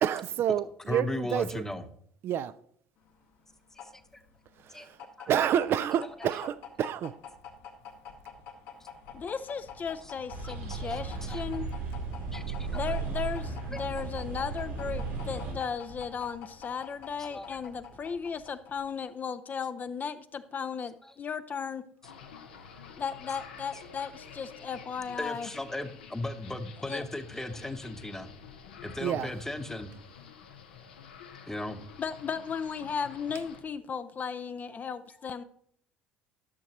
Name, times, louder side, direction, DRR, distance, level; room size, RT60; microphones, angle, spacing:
voice 1, 0.0-1.6 2.2-2.5 4.7-5.0 5.3-7.1 29.0-29.3, right 10 dB, 50° right, 0.3 m, -29 dB
voice 2, 0.9-1.8 4.7-4.9 5.2-5.3 10.0-10.1 10.4-11.4 12.3-12.9 13.7-13.8 17.2-17.5 21.0-21.1 25.1-28.3 28.8-29.9 31.5-31.8, left 1 dB, 10° left, 0.9 m, -37 dB
sound 1, 3.0-19.0, left 6 dB, 70° left, 1.5 m, -48 dB
voice 3, 9.1-11.7 12.7-21.9 23.0-25.5 26.8-27.1 32.0-35.4, left 6 dB, 35° left, 0.5 m, -35 dB
sound 2, 10.3-15.5, right 4 dB, 85° right, 2.5 m, -35 dB
sound 3, 22.0-33.6, left 7 dB, 90° left, 0.9 m, -49 dB
12.5 x 6.4 x 3.0 m
hypercardioid pair, 70°, 5 cm